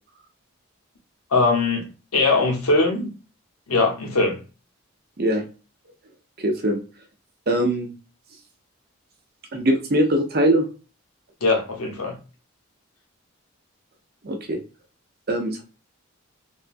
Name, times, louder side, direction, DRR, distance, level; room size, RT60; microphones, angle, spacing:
voice 1, 1.3-3.1 3.7-4.4 11.4-12.2, left 3 dB, 90° left, 2 dB, 1.0 m, -21 dB
voice 2, 6.4-6.8 7.5-7.9 9.5-10.7 14.2-14.6 15.3-15.6, right 1 dB, 45° right, 4 dB, 0.7 m, -21 dB
3.5 x 2.3 x 2.5 m, 0.34 s
head